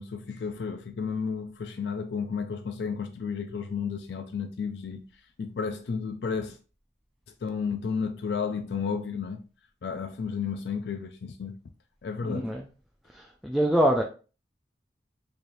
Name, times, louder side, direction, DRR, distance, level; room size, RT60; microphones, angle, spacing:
voice 1, 0.0-5.0 5.4-6.6 7.4-9.4 9.8-11.6 12.0-12.5, left 6 dB, 70° left, 0.4 m, -32 dB
voice 2, 12.2-12.6 13.1-14.0, equal, ahead, 0.3 m, -25 dB
4.1 x 3.2 x 2.6 m
head